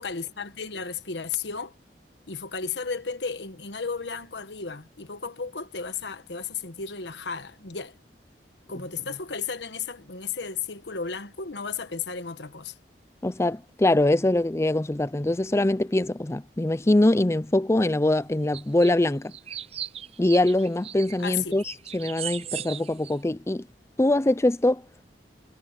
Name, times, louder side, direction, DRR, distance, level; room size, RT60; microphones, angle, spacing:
voice 1, 0.0-1.7 2.3-8.0 8.7-12.7 21.2-21.5, left 5 dB, 80° left, 1.3 m, -34 dB
voice 2, 13.2-19.3 20.2-21.6 21.9-23.7 24.0-24.8, left 1 dB, 15° left, 0.5 m, -23 dB
sound 1, 18.5-18.9 19.3-23.2, right 10 dB, 35° right, 0.4 m, -37 dB
head